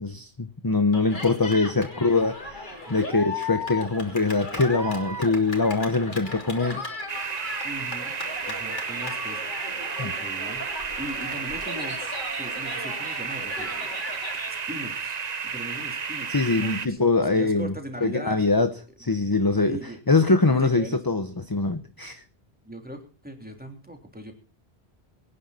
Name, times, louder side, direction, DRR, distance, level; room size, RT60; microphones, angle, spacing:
voice 1, 0.0-6.8 10.0-10.1 16.3-17.7 18.0-19.8 20.1-22.2, left 3 dB, 20° left, 0.9 m, -23 dB
Cheering, 0.9-14.6, left 2 dB, 50° left, 3.3 m, -36 dB
sound 1, 7.1-16.9, right 6 dB, 45° right, 0.9 m, -32 dB
voice 2, 7.6-8.1 8.5-10.6 11.0-12.0 12.3-14.0 14.5-15.2 15.4-17.0 17.3-18.4 19.6-20.0 20.4-21.0 22.6-24.3, right 1 dB, 10° right, 3.4 m, -39 dB
24.0 x 10.0 x 4.2 m
omnidirectional pair, 1.0 m